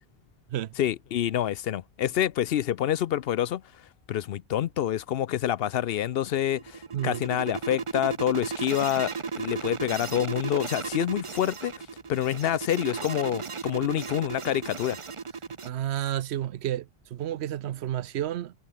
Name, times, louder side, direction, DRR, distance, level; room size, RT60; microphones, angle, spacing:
voice 1, 0.8-3.6 4.1-11.7 12.1-15.0, left 11 dB, 70° left, 0.8 m, -27 dB
sound 1, 6.3-15.7, right 5 dB, 35° right, 0.7 m, -35 dB
voice 2, 6.9-7.2 15.6-18.5, right 12 dB, 80° right, 0.9 m, -31 dB
omnidirectional pair, 1.1 m